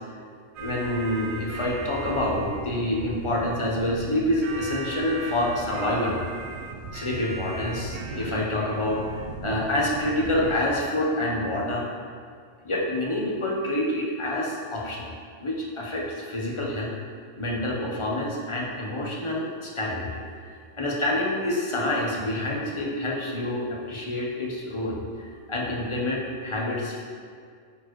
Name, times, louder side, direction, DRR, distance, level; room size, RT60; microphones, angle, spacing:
voice 1, 0.6-6.2 6.9-11.9 12.6-15.1 15.4-16.9 17.4-20.1 20.4-27.0, left 1 dB, 25° left, -3 dB, 0.9 m, -27 dB
sound 1, 0.6-10.6, right 3 dB, 70° right, 0.9 m, -37 dB
8.9 x 4.4 x 3.1 m, 2.1 s
omnidirectional pair, 1.2 m